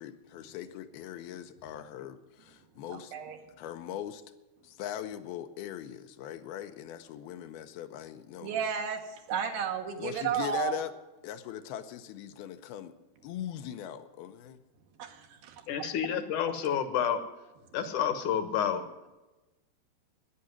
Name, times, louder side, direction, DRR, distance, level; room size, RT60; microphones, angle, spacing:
voice 1, 0.0-3.1 3.6-4.2 4.6-8.5 10.0-10.9 11.2-12.9 13.2-14.6, left 10 dB, 80° left, 9 dB, 2.7 m, -40 dB
voice 2, 2.9-3.4 8.4-9.0 9.3-10.8 15.0-15.9, right 8 dB, 70° right, 4 dB, 3.0 m, -33 dB
voice 3, 15.7-17.2 17.7-18.8, left 8 dB, 65° left, 10 dB, 2.3 m, -29 dB
11.5 x 10.0 x 9.5 m, 1.1 s
omnidirectional pair, 4.5 m